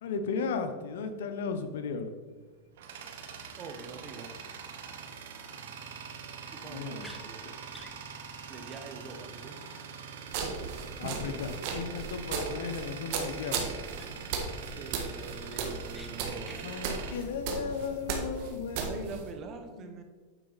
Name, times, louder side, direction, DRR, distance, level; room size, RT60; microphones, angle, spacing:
voice 1, 0.0-2.1 6.6-7.1 11.0-13.7 16.6-19.2 19.8-20.0, left 5 dB, 80° left, 8 dB, 0.8 m, -35 dB
Tools, 2.3-18.1, right 6 dB, 75° right, 1.0 m, -44 dB
voice 2, 3.6-4.3 6.5-7.5 8.2-9.6 14.7-16.8 18.8-20.0, right 4 dB, 35° right, 6 dB, 1.1 m, -44 dB
sound 1, 7.0-7.2 7.7-8.0 8.3-8.4 8.7-8.8 9.1-9.2 13.4-13.5 14.0-14.3 14.7-14.8 15.2-16.1 16.4-16.7, equal, ahead, 0.7 m, -51 dB
sound 2, 10.3-19.3, right 5 dB, 60° right, 1.3 m, -36 dB
9.1 x 4.4 x 4.0 m, 1.4 s
hypercardioid pair, 125°, 0 cm